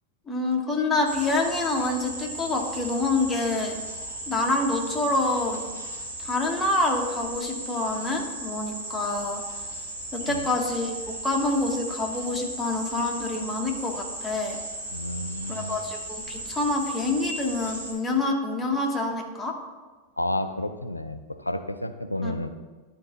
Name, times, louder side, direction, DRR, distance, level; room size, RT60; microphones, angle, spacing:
voice 1, 0.3-3.8 4.3-5.6 6.2-9.4 10.1-14.6 15.5-19.5 22.2-22.4, left 2 dB, 10° left, 0 dB, 1.3 m, -27 dB
sound 1, 1.1-17.9, right 1 dB, 60° right, 2.1 m, -36 dB
voice 2, 14.9-15.8 20.2-22.5, left 1 dB, 85° left, 9 dB, 0.5 m, -31 dB
11.0 x 4.3 x 3.8 m, 1.3 s
figure-of-eight pair, 90°, 0 cm